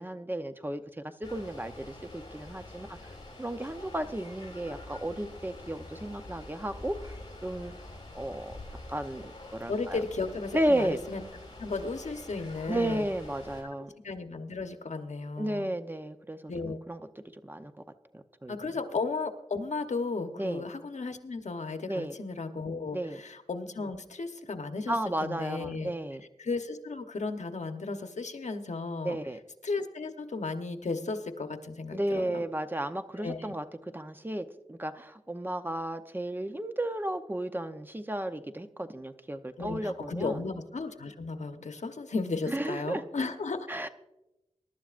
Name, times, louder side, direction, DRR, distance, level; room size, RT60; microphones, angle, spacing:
voice 1, 0.0-3.0 3.4-7.1 7.4-7.7 8.1-8.6 8.9-10.0 10.5-11.0 12.7-13.9 15.4-17.0 17.4-17.7 18.1-18.7 20.4-20.6 21.9-22.1 22.9-23.2 24.9-26.2 29.0-29.4 31.9-33.6 33.9-40.4 42.5-43.0 43.7-43.9, right 1 dB, 15° right, 9 dB, 0.7 m, -33 dB
sound 1, 1.2-13.6, left 2 dB, 35° left, 5.4 m, -46 dB
voice 2, 9.7-11.2 11.6-13.1 14.0-15.7 16.5-16.8 18.5-25.0 25.2-25.9 26.4-29.2 29.6-32.4 33.2-33.4 39.6-43.7, left 3 dB, 80° left, 7 dB, 1.0 m, -35 dB
22.5 x 11.5 x 2.5 m, 0.96 s
wide cardioid pair, 85°, 12 cm